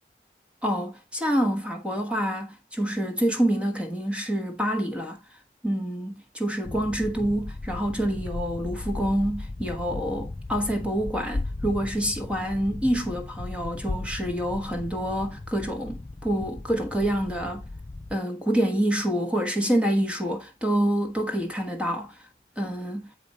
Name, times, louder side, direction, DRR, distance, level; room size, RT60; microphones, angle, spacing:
voice 1, 0.6-5.2 5.6-17.7 18.1-22.2 22.6-23.1, equal, 5° right, 1.1 m, -27 dB
sound 1, 6.6-18.2, left 2 dB, 25° left, 0.4 m, -36 dB
7.7 x 4.8 x 4.1 m
head